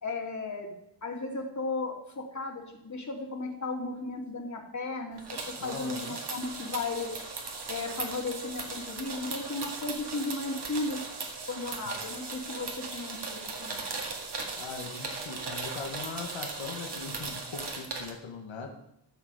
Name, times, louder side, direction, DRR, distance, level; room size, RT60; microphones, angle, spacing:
voice 1, 0.0-0.7 1.0-7.1 7.7-11.0 11.5-13.8, left 3 dB, 40° left, 1 dB, 2.4 m, -35 dB
sound 1, 5.2-18.1, right 4 dB, 60° right, 2.1 m, -38 dB
voice 2, 5.6-6.2 11.9-12.0 14.6-18.7, left 5 dB, 80° left, 2 dB, 1.6 m, -40 dB
13.0 x 6.7 x 4.8 m, 0.80 s
wide cardioid pair, 105°, 46 cm